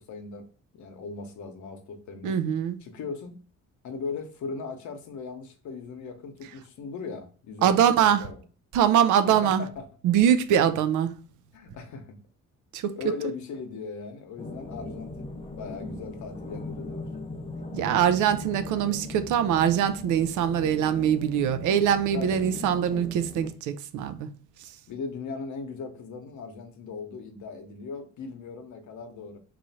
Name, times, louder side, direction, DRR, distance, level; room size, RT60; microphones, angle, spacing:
voice 1, 0.1-0.4 0.7-2.4 2.8-3.3 3.8-8.4 9.3-9.8 11.5-12.2 13.0-17.1 22.1-22.4 24.9-29.4, left 4 dB, 70° left, 0.9 m, -38 dB
voice 2, 2.2-2.8 7.6-8.3 8.7-9.7 10.0-11.1 12.7-13.0 17.7-24.3 24.6-24.7, right 9 dB, 80° right, 0.5 m, -23 dB
sound 1, 14.4-23.5, left 2 dB, 20° left, 0.6 m, -39 dB
3.1 x 2.5 x 4.1 m
cardioid pair, 90°, 30 cm